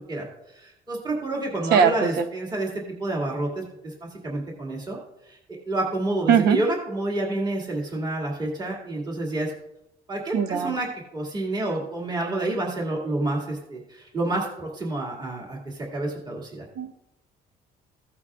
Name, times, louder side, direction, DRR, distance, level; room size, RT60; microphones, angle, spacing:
voice 1, 0.1-5.0 5.3-5.4 5.7-9.5 10.1-10.9 11.1-16.7, right 2 dB, 25° right, -2 dB, 2.3 m, -29 dB
voice 2, 6.3-6.6 10.3-10.7 16.8-16.9, right 7 dB, 75° right, 9 dB, 0.9 m, -19 dB
15.5 x 8.4 x 2.4 m, 0.88 s
cardioid pair, 110°, 17 cm